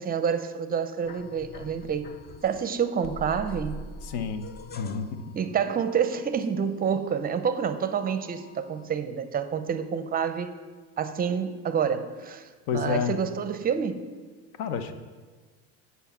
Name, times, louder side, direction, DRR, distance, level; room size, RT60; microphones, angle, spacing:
voice 1, 0.0-2.1 2.4-3.8 5.3-10.6 11.0-14.1, right 7 dB, 25° right, 10 dB, 0.5 m, -28 dB
sound 1, 1.0-2.7 3.0-7.0 7.4-8.9, left 1 dB, 25° left, 0.4 m, -44 dB
voice 2, 4.0-4.5 4.8-5.1 12.7-13.2 14.6-14.9, left 6 dB, 70° left, 9 dB, 1.0 m, -29 dB
8.0 x 5.6 x 7.3 m, 1.4 s
cardioid pair, 130°, 38 cm